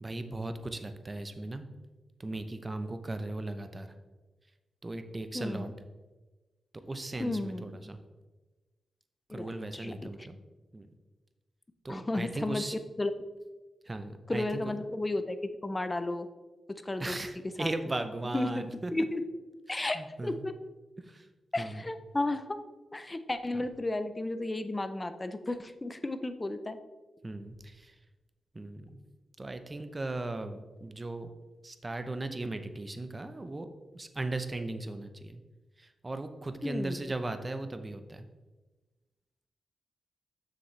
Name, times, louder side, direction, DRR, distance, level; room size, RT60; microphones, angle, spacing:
voice 1, 0.0-1.7 2.2-3.9 4.8-5.7 6.9-8.0 9.3-10.4 10.7-10.9 11.8-12.8 13.9-14.7 17.0-18.9 19.7-20.5 21.0-21.3 21.6-21.8 23.5-23.6 27.2-27.9 28.5-29.0 29.4-31.3 31.6-33.7 33.9-35.4 35.8-38.2, right 2 dB, 25° right, 9 dB, 0.6 m, -37 dB
voice 2, 5.3-5.7 7.2-7.9 9.3-10.3 11.9-12.7 13.0-13.1 14.3-16.3 16.7-17.2 17.6-17.7 18.3-18.6 18.9-19.2 19.7-20.5 21.5-22.6 22.9-26.8 36.6-37.0, left 2 dB, 20° left, 10 dB, 0.5 m, -33 dB
7.2 x 6.3 x 3.2 m, 1.2 s
cardioid pair, 80°, 0 cm